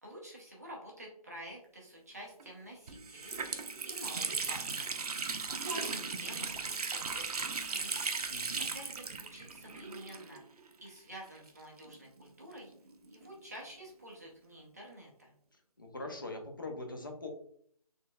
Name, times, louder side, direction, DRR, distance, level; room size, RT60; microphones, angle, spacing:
voice 1, 0.0-5.0 5.4-8.0 8.6-10.4 10.8-12.7 13.1-15.3, right 1 dB, 25° right, -3 dB, 0.7 m, -49 dB
Water tap faucet, 2.4-2.5 2.9-10.6 10.9-11.0 11.8-13.3, right 4 dB, 75° right, 0.5 m, -37 dB
voice 2, 8.3-8.7 15.8-17.3, left 2 dB, 35° left, 3 dB, 0.6 m, -42 dB
4.1 x 3.2 x 2.3 m, 0.62 s
figure-of-eight pair, 180°, 20 cm